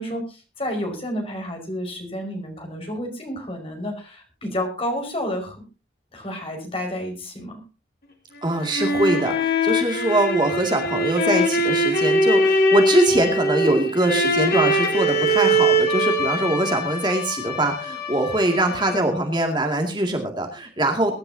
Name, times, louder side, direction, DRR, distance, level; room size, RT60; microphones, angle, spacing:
voice 1, 0.0-5.6 6.1-7.6, equal, 30° left, 3 dB, 5.2 m, -30 dB
sound 1, 8.4-19.2, equal, 60° left, 3.5 m, -22 dB
voice 2, 8.4-21.1, right 1 dB, 25° right, 3 dB, 2.3 m, -22 dB
23.5 x 12.0 x 2.8 m, 0.31 s
head